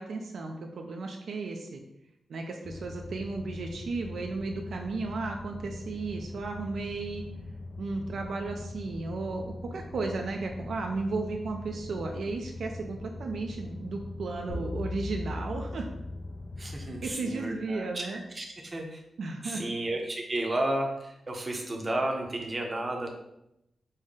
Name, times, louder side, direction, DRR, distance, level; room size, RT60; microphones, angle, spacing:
voice 1, 0.0-1.8 2.3-7.2 7.8-15.9 17.0-18.2 19.2-19.7, right 3 dB, 65° right, 2 dB, 0.4 m, -34 dB
sound 1, 2.6-17.1, left 2 dB, 50° left, 0.4 m, -42 dB
sound 2, 14.5-17.0, left 2 dB, 85° left, 0.8 m, -38 dB
voice 2, 16.6-19.0 19.4-23.1, right 1 dB, 20° right, 1 dB, 0.6 m, -32 dB
5.4 x 2.1 x 3.6 m, 0.84 s
wide cardioid pair, 165°, 0 cm